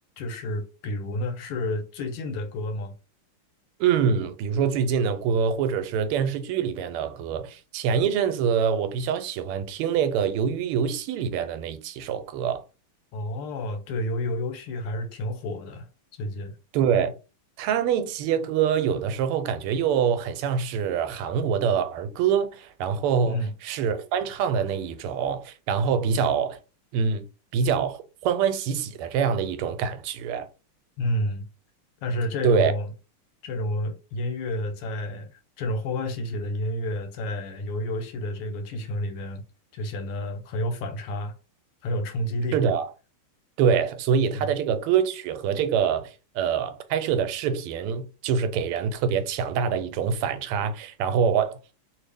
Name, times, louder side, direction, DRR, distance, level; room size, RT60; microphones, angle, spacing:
voice 1, 0.2-2.9 13.1-15.9 16.2-16.5 23.3-23.5 31.0-31.5 32.0-32.9 33.4-39.4 39.7-41.4 41.8-42.6 44.3-44.5, left 1 dB, 85° left, 1.7 m, -30 dB
voice 2, 3.8-12.6 16.7-17.1 17.6-26.6 26.9-27.2 27.5-30.5 32.4-32.7 42.5-42.9 43.6-51.6, right 7 dB, 90° right, 1.5 m, -25 dB
3.2 x 2.6 x 3.3 m
omnidirectional pair, 2.4 m